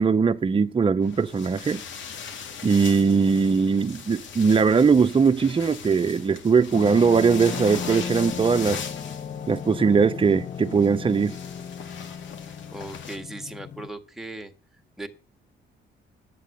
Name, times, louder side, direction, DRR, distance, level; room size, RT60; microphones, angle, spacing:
voice 1, 0.0-1.8 2.6-8.8 9.5-11.4, right 5 dB, 25° right, 0.7 m, -20 dB
sound 1, 1.0-13.2, left 6 dB, 70° left, 2.2 m, -40 dB
sound 2, 6.7-13.9, left 7 dB, 40° left, 0.6 m, -36 dB
voice 2, 12.7-14.5 15.0-15.1, right 2 dB, ahead, 1.8 m, -37 dB
11.0 x 8.4 x 6.8 m
cardioid pair, 90°, 20 cm